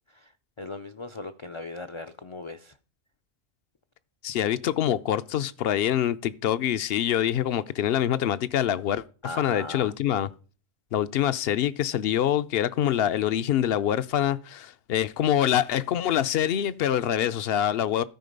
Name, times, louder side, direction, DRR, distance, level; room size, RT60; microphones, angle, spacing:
voice 1, 0.6-2.8 9.2-9.9, left 2 dB, 45° left, 0.4 m, -38 dB
voice 2, 4.2-9.0 9.4-10.3 10.9-18.0, left 10 dB, 65° left, 0.8 m, -25 dB
13.5 x 5.0 x 5.2 m
omnidirectional pair, 1.1 m